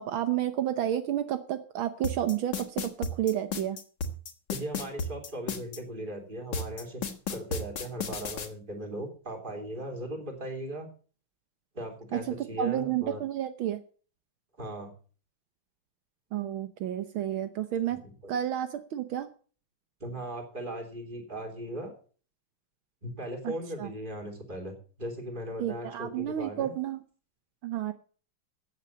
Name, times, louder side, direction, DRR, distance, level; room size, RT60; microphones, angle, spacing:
voice 1, 0.0-3.8 12.1-12.2 12.6-13.8 16.3-18.0 18.3-19.3 23.4-23.5 23.8-23.9 25.6-27.0 27.6-27.9, right 11 dB, 75° right, 9 dB, 1.8 m, -30 dB
sound 1, 2.0-5.8 6.5-8.5, left 4 dB, 60° left, 2.3 m, -33 dB
voice 2, 4.5-7.0 7.3-10.9 11.8-13.2 14.6-14.9 17.9-18.3 20.0-21.9 23.0-26.7, right 1 dB, 25° right, 3 dB, 3.5 m, -38 dB
14.5 x 8.5 x 6.6 m, 0.41 s
omnidirectional pair, 2.3 m